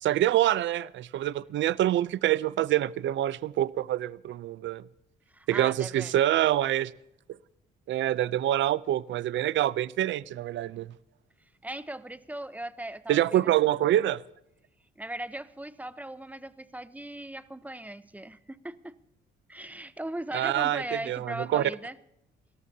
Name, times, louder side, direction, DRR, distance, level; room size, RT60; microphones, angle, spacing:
voice 1, 0.0-4.8 5.5-6.9 7.9-10.9 13.1-14.2 20.3-21.7, right 13 dB, 70° right, 0.6 m, -26 dB
voice 2, 5.3-6.1 11.6-13.5 15.0-18.9 19.5-22.0, right 1 dB, 10° right, 0.7 m, -38 dB
29.0 x 14.0 x 2.8 m
cardioid pair, 90°, 20 cm